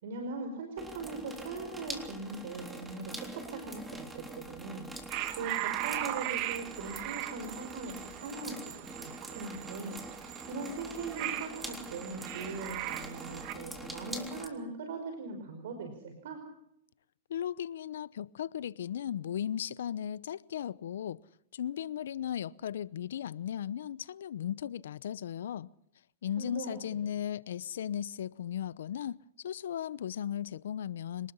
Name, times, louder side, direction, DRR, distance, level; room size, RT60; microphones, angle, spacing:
voice 1, 0.0-4.9 5.3-10.0 10.5-16.4 26.4-26.8, right 3 dB, 65° right, 5.2 m, -40 dB
sound 1, 0.8-14.5, right 1 dB, 5° right, 3.5 m, -45 dB
sound 2, 5.1-13.5, right 15 dB, 45° right, 1.7 m, -39 dB
voice 2, 17.3-21.2 21.5-25.7 26.2-31.3, left 10 dB, 75° left, 0.8 m, -36 dB
26.0 x 20.0 x 5.7 m
hypercardioid pair, 120°, 0 cm